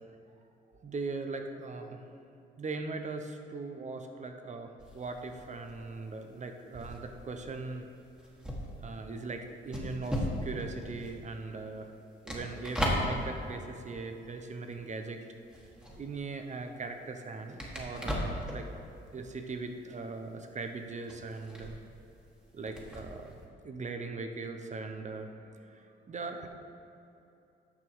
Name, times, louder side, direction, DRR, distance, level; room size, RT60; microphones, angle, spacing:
voice 1, 0.8-2.0 2.6-7.9 8.8-11.9 12.2-15.2 16.0-18.7 19.1-21.8 22.5-26.5, right 3 dB, 35° right, 5 dB, 0.9 m, -40 dB
sound 1, 4.8-15.0 15.3-23.4, equal, 5° right, 1.7 m, -38 dB
9.4 x 6.1 x 4.7 m, 2.8 s
cardioid pair, 90°, 20 cm